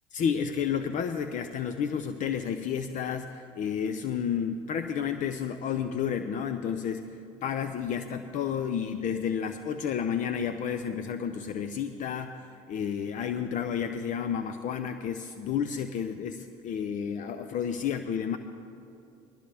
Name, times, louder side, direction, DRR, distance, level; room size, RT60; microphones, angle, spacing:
voice 1, 0.1-7.1 7.4-18.4, left 7 dB, 50° left, 9 dB, 0.6 m, -31 dB
20.0 x 13.5 x 3.5 m, 2.6 s
supercardioid pair, 85°, 16 cm